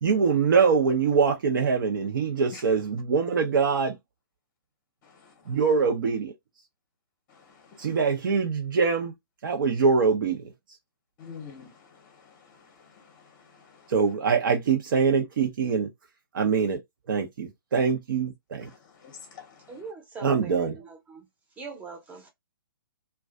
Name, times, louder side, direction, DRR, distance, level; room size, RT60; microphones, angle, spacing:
voice 1, 0.0-4.0 5.5-6.3 7.8-9.1 9.4-10.4 13.9-15.9 16.3-16.8 17.1-18.7 20.2-20.8, right 5 dB, 60° right, 0.6 m, -23 dB
voice 2, 5.0-5.5 7.3-7.9 11.2-13.9 18.6-19.7, left 6 dB, 30° left, 0.7 m, -48 dB
voice 3, 19.7-21.3 21.6-22.3, right 4 dB, 10° right, 0.7 m, -42 dB
2.4 x 2.2 x 2.3 m
hypercardioid pair, 140°, 12 cm